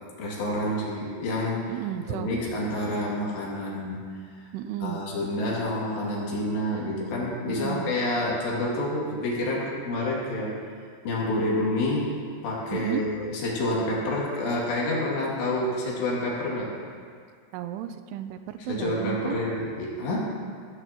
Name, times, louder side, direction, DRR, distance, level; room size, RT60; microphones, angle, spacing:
voice 1, 0.2-1.7 2.1-4.1 4.8-10.5 11.0-12.2 12.4-16.7 18.7-20.2, left 1 dB, 80° left, -4 dB, 4.7 m, -28 dB
voice 2, 1.7-2.3 4.5-5.0 7.5-7.9 12.7-13.0 17.5-19.4, right 11 dB, 85° right, 9 dB, 2.6 m, -33 dB
17.0 x 16.0 x 3.0 m, 2.2 s
omnidirectional pair, 4.9 m